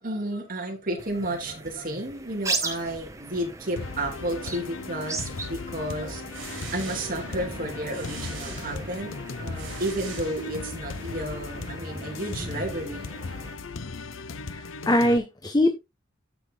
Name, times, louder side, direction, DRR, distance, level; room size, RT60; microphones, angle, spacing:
voice 1, 0.0-9.1 9.4-13.1, right 1 dB, 45° right, 3.1 m, -32 dB
sound 1, 1.0-13.5, right 3 dB, 15° right, 1.3 m, -38 dB
sound 2, 3.8-15.2, left 3 dB, 85° left, 0.7 m, -37 dB
sound 3, 6.0-10.9, right 6 dB, 75° right, 4.8 m, -43 dB
voice 2, 14.5-15.8, left 1 dB, 20° left, 0.9 m, -22 dB
17.0 x 6.0 x 2.2 m
head